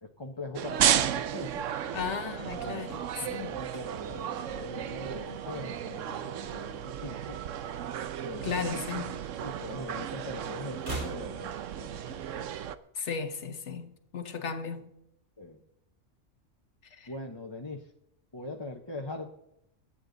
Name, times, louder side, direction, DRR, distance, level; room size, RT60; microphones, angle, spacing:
voice 1, 0.0-1.7 2.6-2.8 3.2-7.4 8.2-8.8 9.4-12.2 15.4-15.6 17.1-17.9 18.3-19.3, left 2 dB, 20° left, 1.0 m, -41 dB
sound 1, 0.6-12.8, right 9 dB, 80° right, 1.1 m, -33 dB
voice 2, 1.9-3.6 8.4-9.2 12.9-14.9 16.8-17.1, left 6 dB, 65° left, 1.6 m, -35 dB
sound 2, 3.6-6.0 6.3-6.6 6.8-8.3 8.6-9.9 10.2-12.3 12.6-12.7, right 1 dB, 60° right, 4.0 m, -45 dB
22.5 x 9.0 x 4.0 m
omnidirectional pair, 1.3 m